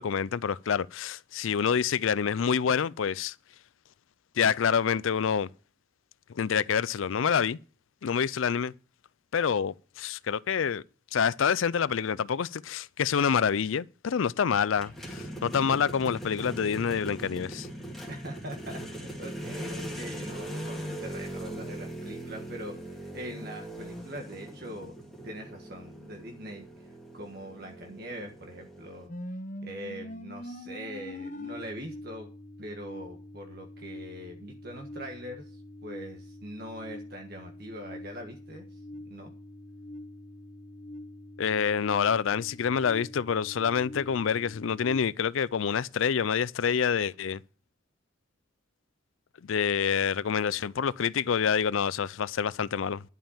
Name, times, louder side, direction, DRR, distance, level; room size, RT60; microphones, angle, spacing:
voice 1, 0.0-3.3 4.4-5.5 6.3-7.6 8.0-8.7 9.3-10.8 11.1-17.7 41.4-47.4 49.4-53.0, left 7 dB, 75° left, 0.4 m, -27 dB
sound 1, 14.7-29.1, right 1 dB, ahead, 2.2 m, -40 dB
voice 2, 18.1-24.9 25.2-29.4 29.6-32.3 32.6-38.8 39.1-39.3, equal, 50° right, 1.4 m, -42 dB
sound 2, 29.1-45.0, left 1 dB, 40° left, 1.0 m, -44 dB
11.0 x 5.6 x 7.1 m
head